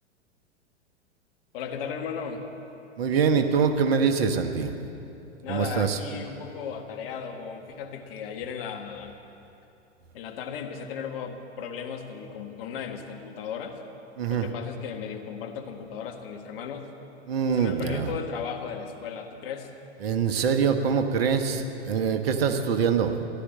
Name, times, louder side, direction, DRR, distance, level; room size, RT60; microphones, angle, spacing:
voice 1, 1.5-2.4 5.4-9.1 10.1-13.8 14.3-16.9 17.5-19.7, left 7 dB, 50° left, 4 dB, 1.7 m, -36 dB
voice 2, 3.0-4.7 5.5-6.0 14.2-14.5 17.3-18.1 20.0-23.1, right 6 dB, 55° right, 7 dB, 1.3 m, -24 dB
15.0 x 12.0 x 7.6 m, 2.9 s
figure-of-eight pair, 100°, 35 cm